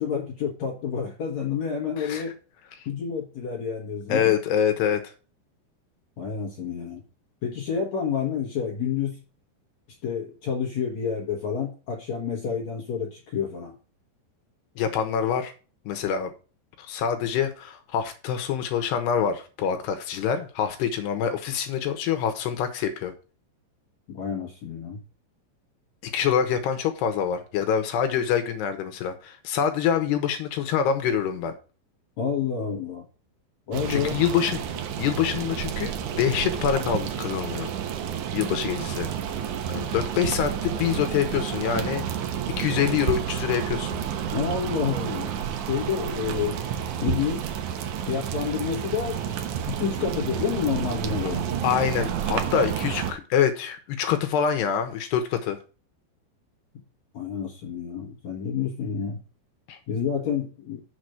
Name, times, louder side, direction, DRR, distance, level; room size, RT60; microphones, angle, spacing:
voice 1, 0.0-2.3 2.9-4.3 6.2-7.0 7.4-9.2 10.0-13.7 24.1-25.0 32.2-33.1 33.7-34.2 44.3-45.3 45.6-46.6 47.0-47.5 48.1-49.4 49.7-51.5 57.1-59.2 59.9-60.8, left 7 dB, 60° left, 0 dB, 2.0 m, -29 dB
voice 2, 4.1-5.0 14.8-15.5 15.9-16.3 16.9-23.1 26.1-31.5 33.9-34.6 35.0-37.7 38.3-39.1 39.7-42.1 42.6-44.0 51.6-55.6 59.7-59.8, left 8 dB, 75° left, 7 dB, 3.0 m, -25 dB
sound 1, 33.7-53.1, right 8 dB, 90° right, 1.7 m, -30 dB
7.1 x 6.1 x 6.4 m, 0.35 s
omnidirectional pair, 5.2 m